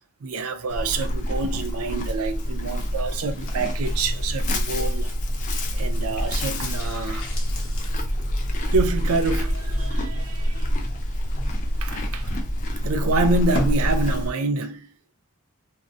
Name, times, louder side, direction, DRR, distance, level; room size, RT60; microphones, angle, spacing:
voice 1, 0.2-5.1 5.7-7.3 8.7-10.7 11.8-12.4 12.8-14.9, right 3 dB, 90° right, 0.4 m, -27 dB
Livestock farm animals working animals, 0.7-14.3, equal, 35° left, 0.5 m, -26 dB
sound 1, 3.3-14.4 14.7-14.8, left 1 dB, 70° left, 0.8 m, -38 dB
2.7 x 2.1 x 2.4 m
head